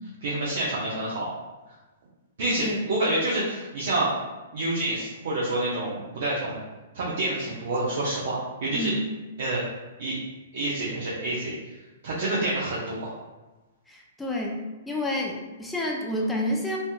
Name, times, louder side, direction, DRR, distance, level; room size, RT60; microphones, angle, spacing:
voice 1, 0.2-1.3 2.4-4.1 4.5-6.6 6.9-8.9 9.4-9.7 10.0-10.1 10.5-11.5 12.0-13.1, right 1 dB, 65° right, -7 dB, 0.7 m, -28 dB
voice 2, 13.9-16.8, left 1 dB, 5° left, -2 dB, 0.4 m, -29 dB
3.4 x 2.8 x 2.2 m, 1.2 s
hypercardioid pair, 120°, 0 cm